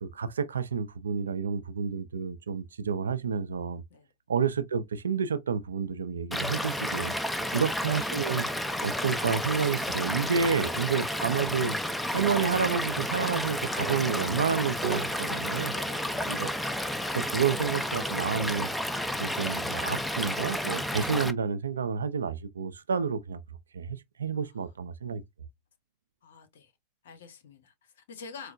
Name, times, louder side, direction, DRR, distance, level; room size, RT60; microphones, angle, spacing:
voice 1, 0.0-3.8 4.3-7.2 7.5-8.5 8.8-11.8 12.1-15.7 16.3-16.5 17.1-18.7 19.2-23.4 23.7-25.2, right 6 dB, 90° right, 0.4 m, -30 dB
Stream / Liquid, 6.3-21.3, left 1 dB, 5° left, 0.5 m, -31 dB
sound 1, 9.5-10.6 10.9-11.0 11.5-11.9 12.2-12.5 13.3-15.3, right 11 dB, 45° right, 0.7 m, -40 dB
voice 2, 15.7-16.3 24.4-24.6 26.2-26.7 27.0-28.5, left 5 dB, 80° left, 1.0 m, -47 dB
4.5 x 2.1 x 2.5 m
hypercardioid pair, 90°, 0 cm